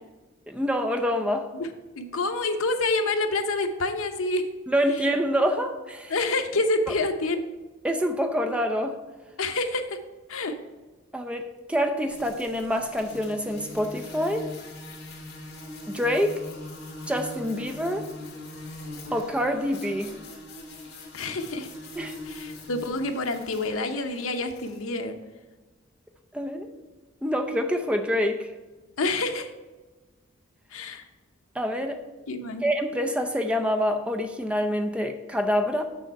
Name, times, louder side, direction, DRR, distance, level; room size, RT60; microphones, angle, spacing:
voice 1, 0.5-1.5 4.7-6.1 7.8-9.0 11.1-14.5 15.9-16.4 17.1-18.1 19.1-20.1 22.0-22.1 26.3-26.7 27.2-28.5 31.5-32.0 32.6-35.8, equal, 5° right, 4 dB, 0.5 m, -26 dB
voice 2, 2.0-4.4 6.1-7.4 9.4-10.0 10.3-10.5 21.1-21.7 22.3-25.2 29.0-29.5 30.7-31.0 32.3-32.6, left 2 dB, 85° left, 6 dB, 0.8 m, -27 dB
sound 1, 12.1-24.8, left 1 dB, 55° left, 2.1 m, -41 dB
6.4 x 6.3 x 4.6 m, 1.2 s
head